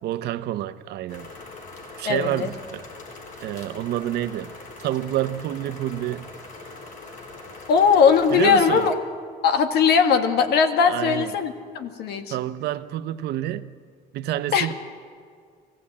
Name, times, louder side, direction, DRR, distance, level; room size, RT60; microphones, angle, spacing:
voice 1, 0.0-1.3 2.0-2.8 3.4-4.5 4.8-6.3 8.3-8.9 10.8-11.3 12.3-13.7 14.1-14.7, right 13 dB, 75° right, 0.8 m, -28 dB
sound 1, 1.1-9.0, left 3 dB, 50° left, 4.2 m, -42 dB
voice 2, 2.1-2.5 7.7-8.9 9.4-12.4 14.5-14.7, left 6 dB, 70° left, 1.8 m, -19 dB
21.0 x 15.5 x 8.6 m
cardioid pair, 110°, 17 cm